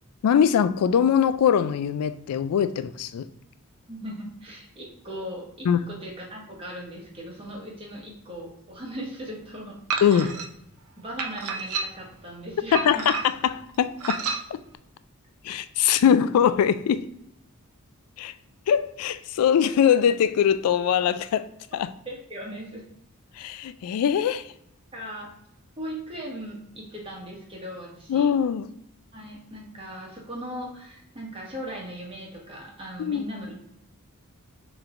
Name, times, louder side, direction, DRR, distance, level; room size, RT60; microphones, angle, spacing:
voice 1, 0.2-3.3 5.7-5.8 10.0-10.4 12.7-14.2 14.5-14.6 15.4-17.1 18.2-18.3 18.7-21.9 23.3-24.5 28.1-28.7 33.0-33.2, left 8 dB, 85° left, 0.3 m, -22 dB
voice 2, 3.9-9.8 10.1-10.3 11.0-13.0 22.0-22.8 24.9-25.3 25.8-28.3 29.1-33.7, equal, 25° right, 1.3 m, -38 dB
sound 1, 9.9-10.5 11.2-12.1 12.7-13.5 14.0-14.4, right 5 dB, 90° right, 0.6 m, -30 dB
6.4 x 3.1 x 2.5 m
head